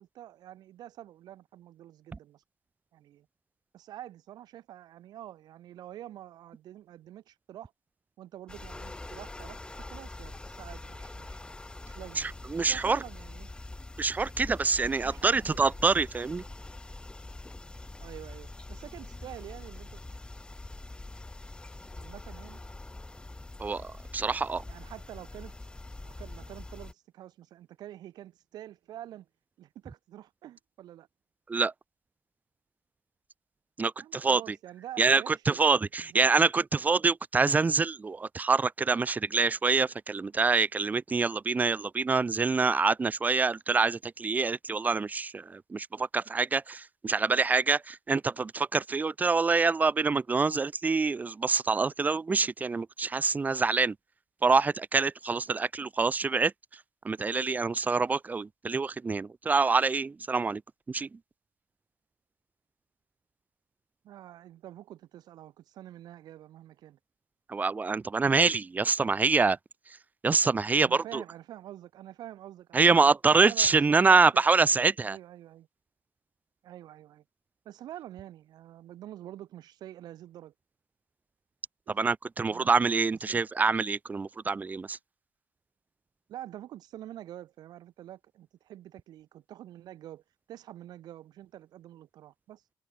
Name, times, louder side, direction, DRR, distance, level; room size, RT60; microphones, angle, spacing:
voice 1, 0.0-2.4 2.9-3.3 3.7-7.7 8.2-11.4 11.9-13.5 14.8-15.8 18.0-20.0 21.9-22.6 24.7-25.5 26.0-29.3 29.6-31.1 34.0-36.2 64.0-67.0 70.8-73.1 73.4-75.7 76.6-77.2 77.6-80.5 81.9-82.0 82.4-82.7 83.3-83.4 86.3-90.2 90.5-92.6, right 12 dB, 75° right, 1.0 m, -47 dB
sound 1, 8.5-26.9, left 2 dB, 15° left, 0.7 m, -44 dB
voice 2, 12.2-13.0 14.0-16.4 23.6-24.6 31.5-31.7 33.8-34.4 35.0-54.0 54.4-56.5 57.0-60.6 60.9-61.2 67.5-69.6 70.2-71.2 72.7-75.2 82.0-85.0, right 4 dB, 25° right, 0.4 m, -26 dB
cardioid pair, 85°, 7 cm